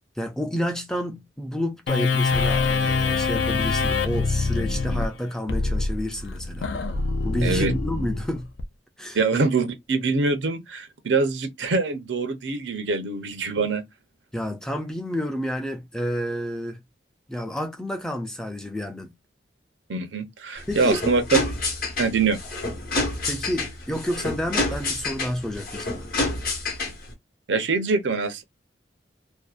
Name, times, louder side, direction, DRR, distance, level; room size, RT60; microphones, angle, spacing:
voice 1, 0.2-6.7 7.2-8.5 9.0-9.2 14.3-16.8 17.3-19.1 20.7-21.0 23.3-26.1, equal, 5° left, 0.3 m, -30 dB
sound 1, 1.9-8.6, left 4 dB, 70° left, 0.4 m, -25 dB
voice 2, 7.4-7.7 9.1-13.8 19.9-21.2 22.0-22.4 27.5-28.4, right 4 dB, 90° right, 0.6 m, -24 dB
sound 2, 20.6-27.1, left 2 dB, 50° left, 0.8 m, -28 dB
2.6 x 2.1 x 2.3 m
head